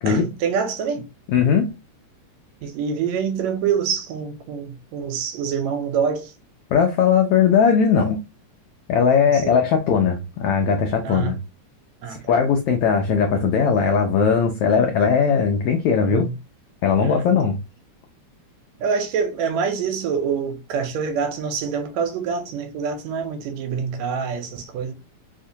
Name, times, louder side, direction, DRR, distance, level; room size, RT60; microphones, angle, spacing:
voice 1, 0.1-1.1 2.6-6.3 9.2-9.5 11.1-11.3 12.0-12.2 16.1-16.3 17.0-17.2 18.8-24.9, right 6 dB, 80° right, 1.8 m, -26 dB
voice 2, 1.3-1.7 6.7-8.2 8.9-11.4 12.0-16.3 16.8-17.6, left 6 dB, 85° left, 1.3 m, -19 dB
4.6 x 2.1 x 2.6 m
omnidirectional pair, 3.3 m